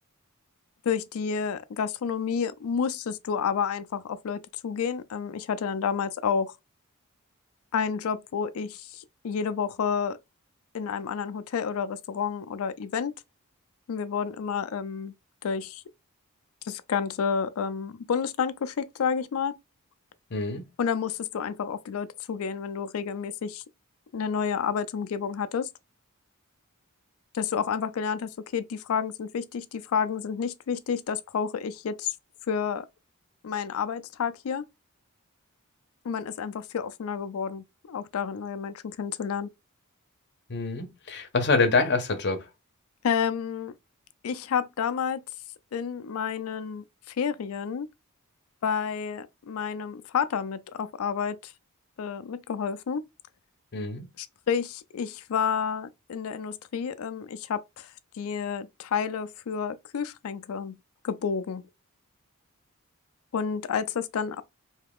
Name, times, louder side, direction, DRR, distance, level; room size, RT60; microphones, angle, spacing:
voice 1, 0.8-6.5 7.7-10.2 10.7-13.1 13.9-15.1 15.4-15.8 16.6-19.5 20.8-23.6 24.1-25.7 27.3-32.1 32.5-32.9 33.4-34.7 36.0-39.5 43.0-43.7 44.2-45.2 45.7-47.9 48.6-51.5 52.0-53.0 54.2-60.8 61.0-61.6 63.3-64.4, left 6 dB, 70° left, 0.4 m, -30 dB
voice 2, 20.3-20.6 40.5-42.4 53.7-54.1, left 3 dB, 50° left, 0.7 m, -26 dB
2.8 x 2.3 x 3.4 m
head